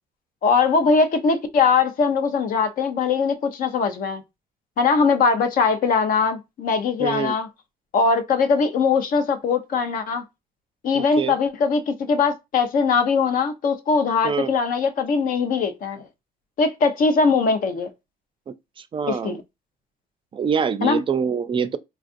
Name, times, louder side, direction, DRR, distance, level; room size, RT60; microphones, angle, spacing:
voice 1, 0.4-4.2 4.8-7.5 7.9-10.2 10.8-16.0 16.6-17.9 19.1-19.4 20.8-21.0, left 5 dB, 55° left, 0.8 m, -21 dB
voice 2, 7.0-7.3 10.9-11.3 14.2-14.5 18.5-18.6 18.9-19.4 20.3-21.8, right 6 dB, 30° right, 0.4 m, -25 dB
4.5 x 2.4 x 2.5 m
cardioid pair, 110°, 17 cm